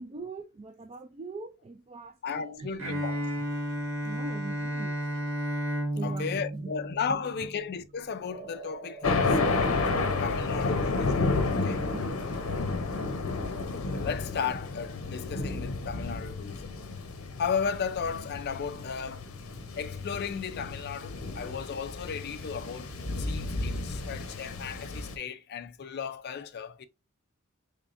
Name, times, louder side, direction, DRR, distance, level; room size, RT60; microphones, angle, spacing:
voice 1, 0.0-2.8 4.0-4.9 5.9-6.7 9.0-9.1 9.8-10.1 10.9-11.0 11.9-12.1, right 3 dB, 30° right, 0.3 m, -42 dB
voice 2, 2.2-3.4 6.0-9.9 10.2-11.9 13.7-16.8 17.4-19.3 19.8-26.9, left 6 dB, 50° left, 0.4 m, -35 dB
Bowed string instrument, 2.8-7.7, right 1 dB, 65° right, 1.1 m, -33 dB
Thunder, 9.0-25.2, left 3 dB, 70° left, 0.8 m, -31 dB
sound 1, 15.2-16.6, right 3 dB, 5° right, 2.0 m, -51 dB
3.6 x 3.4 x 2.5 m
head